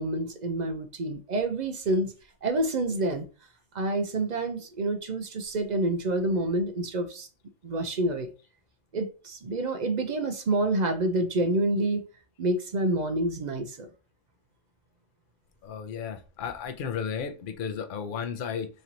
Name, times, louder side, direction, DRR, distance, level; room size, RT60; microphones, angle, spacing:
voice 1, 0.0-2.1 2.4-3.2 3.7-7.3 7.6-8.3 8.9-12.0 12.4-13.9, right 2 dB, 50° right, 0.5 m, -28 dB
voice 2, 15.6-18.7, left 7 dB, 55° left, 0.7 m, -34 dB
3.2 x 2.9 x 3.8 m
omnidirectional pair, 1.2 m